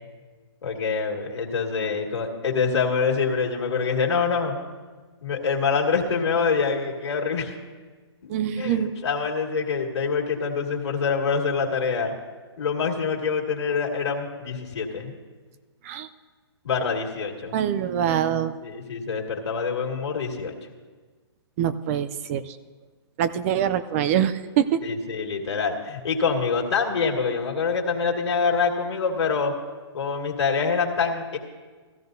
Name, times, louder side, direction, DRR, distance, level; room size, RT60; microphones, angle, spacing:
voice 1, 0.6-4.6 5.2-7.5 8.2-8.3 8.6-12.1 12.6-15.2 16.6-17.5 18.6-20.6 24.8-29.5 29.9-31.4, left 5 dB, 75° left, 1 dB, 2.1 m, -25 dB
voice 2, 8.3-8.9 15.8-16.1 17.5-18.6 21.6-22.6 23.2-24.8, right 9 dB, 30° right, 13 dB, 0.4 m, -24 dB
15.5 x 14.0 x 2.7 m, 1.4 s
hypercardioid pair, 145°, 14 cm